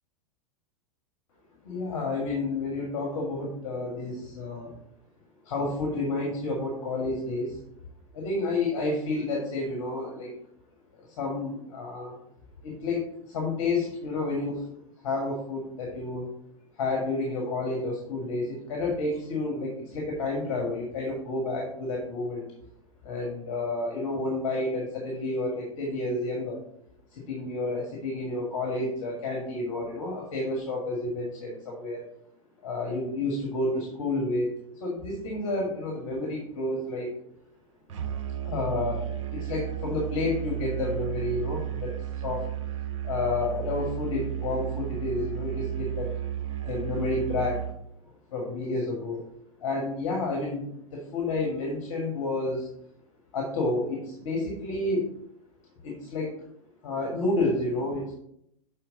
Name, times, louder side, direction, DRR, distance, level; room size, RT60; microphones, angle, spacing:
voice 1, 1.6-4.7 5.4-7.6 8.1-10.3 10.9-12.2 12.6-14.6 15.0-16.3 16.8-22.4 23.0-26.6 27.1-32.0 32.6-34.5 34.8-37.1 38.4-41.9 42.2-42.5 43.0-46.1 46.6-47.6 48.3-49.2 49.6-52.7 53.3-55.0 55.8-56.3 56.8-58.1, left 2 dB, 65° left, -1 dB, 1.6 m, -30 dB
Musical instrument, 37.9-47.8, right 11 dB, 60° right, 0.8 m, -33 dB
6.6 x 4.3 x 3.8 m, 0.73 s
hypercardioid pair, 95°, 18 cm